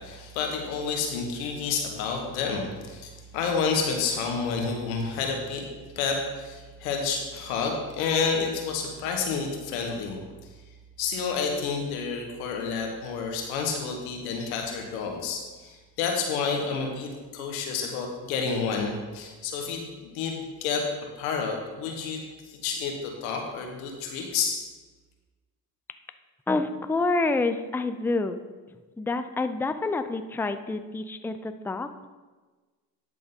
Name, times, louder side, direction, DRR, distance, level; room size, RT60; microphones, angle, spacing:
voice 1, 0.0-5.6 6.0-10.2 11.0-20.8 21.2-24.6, left 5 dB, 90° left, 2 dB, 1.2 m, -30 dB
voice 2, 26.5-28.4 29.0-31.9, left 3 dB, 5° left, 9 dB, 0.5 m, -27 dB
11.0 x 3.9 x 5.4 m, 1.3 s
hypercardioid pair, 55°, 41 cm